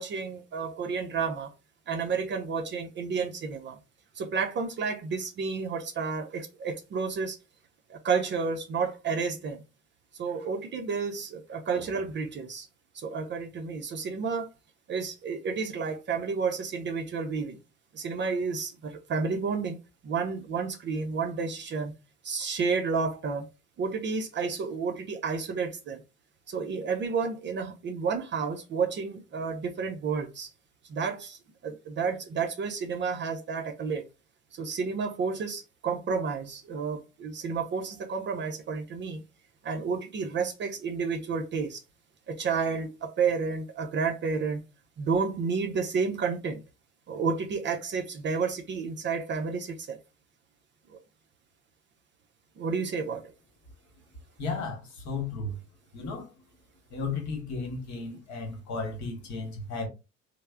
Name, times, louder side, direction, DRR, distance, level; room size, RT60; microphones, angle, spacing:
voice 1, 0.0-1.5 1.9-3.8 4.2-7.4 7.9-9.6 10.1-12.7 12.9-14.5 14.9-17.6 17.9-19.8 20.0-21.9 22.2-23.5 23.8-26.0 26.5-30.5 30.9-34.0 34.5-39.2 39.6-41.8 42.3-44.6 45.0-46.6 47.1-50.0 50.9-51.0 52.6-53.2, right 5 dB, 30° right, 0.5 m, -31 dB
voice 2, 54.4-55.6 55.9-56.3 56.9-59.9, left 3 dB, 50° left, 1.2 m, -34 dB
3.2 x 2.0 x 3.4 m
figure-of-eight pair, 55°, 37 cm